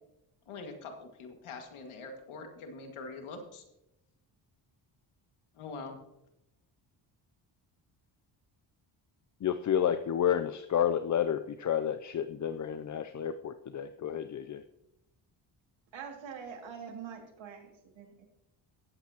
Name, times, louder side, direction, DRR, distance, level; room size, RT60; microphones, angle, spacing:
voice 1, 0.5-3.6 5.5-6.0, left 3 dB, 80° left, 4 dB, 2.1 m, -44 dB
voice 2, 9.4-14.6, left 9 dB, 40° left, 10 dB, 0.5 m, -30 dB
voice 3, 15.9-18.3, right 7 dB, 65° right, 1 dB, 2.6 m, -44 dB
19.0 x 8.0 x 2.9 m, 0.86 s
cardioid pair, 85°, 49 cm